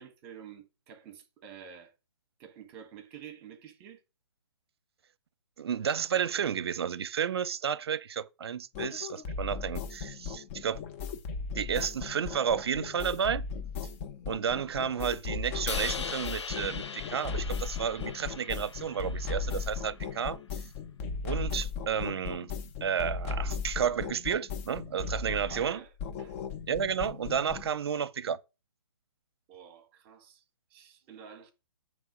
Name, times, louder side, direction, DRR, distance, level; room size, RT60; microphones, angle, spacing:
voice 1, 0.0-1.9 2.4-4.0 25.3-26.4 29.5-30.4 30.7-31.5, right 8 dB, 30° right, 1.6 m, -49 dB
voice 2, 5.6-10.8 11.5-13.4 14.3-20.6 21.2-22.5 22.8-25.8 26.7-28.4, right 8 dB, 65° right, 0.6 m, -32 dB
sound 1, 8.7-27.7, left 5 dB, 30° left, 0.9 m, -37 dB
Crash cymbal, 15.7-19.9, left 5 dB, 85° left, 0.7 m, -40 dB
8.9 x 3.4 x 6.3 m
hypercardioid pair, 145°, 14 cm